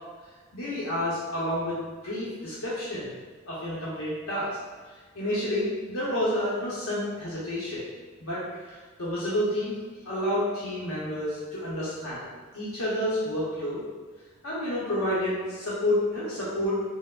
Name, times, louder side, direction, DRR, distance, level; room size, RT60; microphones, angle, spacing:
voice 1, 0.5-3.1 3.5-4.6 5.1-7.9 8.2-9.7 10.0-13.8 14.4-16.7, left 1 dB, 75° left, -8 dB, 0.7 m, -29 dB
4.3 x 2.0 x 2.3 m, 1.4 s
head